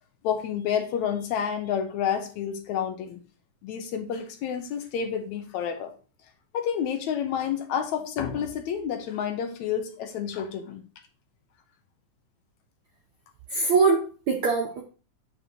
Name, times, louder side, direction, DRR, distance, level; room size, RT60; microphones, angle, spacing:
voice 1, 0.2-3.2 3.6-5.9 6.5-10.8, left 8 dB, 75° left, 6 dB, 2.1 m, -29 dB
voice 2, 13.5-14.8, right 4 dB, 75° right, 2 dB, 1.2 m, -23 dB
8.5 x 5.4 x 3.0 m, 0.37 s
omnidirectional pair, 3.5 m